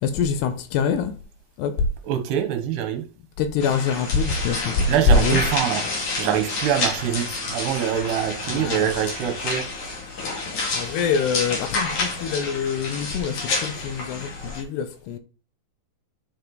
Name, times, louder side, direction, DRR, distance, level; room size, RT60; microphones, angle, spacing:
voice 1, 0.0-1.2 1.6-1.9 3.4-4.9 5.1-5.4 8.5-8.9 10.7-15.2, left 5 dB, 80° left, 2.9 m, -24 dB
voice 2, 2.0-3.1 4.9-5.9 6.2-9.7, right 9 dB, 75° right, 2.9 m, -24 dB
sound 1, 3.6-14.6, left 3 dB, 50° left, 3.2 m, -29 dB
10.5 x 5.3 x 3.9 m
omnidirectional pair, 5.0 m